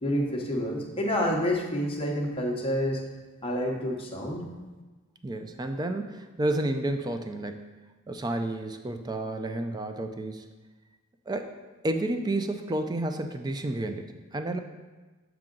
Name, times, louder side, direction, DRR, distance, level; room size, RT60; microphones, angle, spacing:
voice 1, 0.0-3.0 3.4-4.5, equal, 25° left, -1 dB, 0.9 m, -28 dB
voice 2, 5.2-7.7 8.1-10.4 11.3-11.5 11.8-14.6, right 1 dB, 20° right, 7 dB, 0.4 m, -31 dB
7.5 x 4.7 x 3.8 m, 1.2 s
head